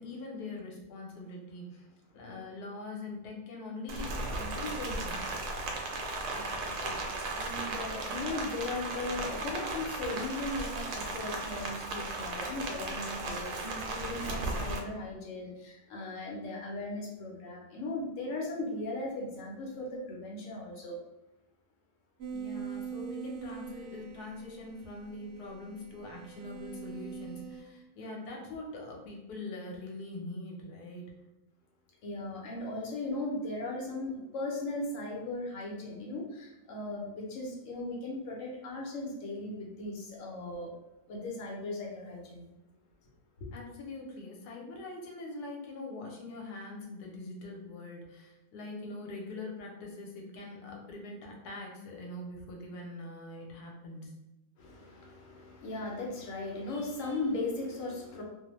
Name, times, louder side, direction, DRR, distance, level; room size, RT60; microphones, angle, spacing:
voice 1, 0.0-1.9 2.1-5.3 22.3-31.1 43.5-54.1, left 2 dB, 85° left, 0 dB, 1.2 m, -43 dB
Rain, 3.9-14.8, right 2 dB, 85° right, 1.1 m, -36 dB
voice 2, 6.0-21.0 32.0-40.7 41.1-42.5 43.4-43.5 54.6-58.2, left 2 dB, 60° left, -1 dB, 1.0 m, -38 dB
sound 1, 22.2-27.6, right 7 dB, 65° right, 0.8 m, -43 dB
2.7 x 2.1 x 3.0 m, 0.97 s
omnidirectional pair, 1.6 m